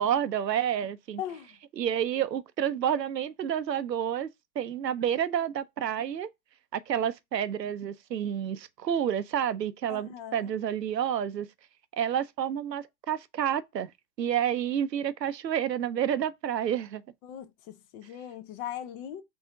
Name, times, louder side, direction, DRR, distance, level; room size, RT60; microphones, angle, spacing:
voice 1, 0.0-1.2 1.8-4.3 4.6-6.3 6.7-11.5 12.0-13.9 14.2-17.0, right 9 dB, 90° right, 0.6 m, -29 dB
voice 2, 1.2-1.6 9.9-10.6 17.2-19.2, left 10 dB, 35° left, 0.7 m, -39 dB
3.8 x 3.4 x 3.6 m
hypercardioid pair, 100°, 49 cm